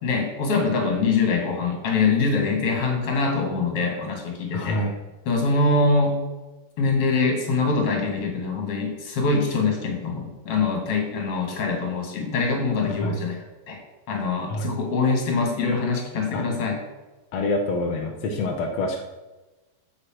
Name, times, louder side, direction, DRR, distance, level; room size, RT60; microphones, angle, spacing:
voice 1, 0.0-4.8 5.3-6.2 6.8-13.4 13.7-13.8 14.1-16.8, left 4 dB, 40° left, 2 dB, 2.9 m, -24 dB
voice 2, 4.5-5.0 12.9-13.2 14.5-14.7 16.3-16.4 17.3-19.0, left 2 dB, 70° left, 1 dB, 1.6 m, -26 dB
10.0 x 6.6 x 7.7 m, 1.2 s
omnidirectional pair, 4.7 m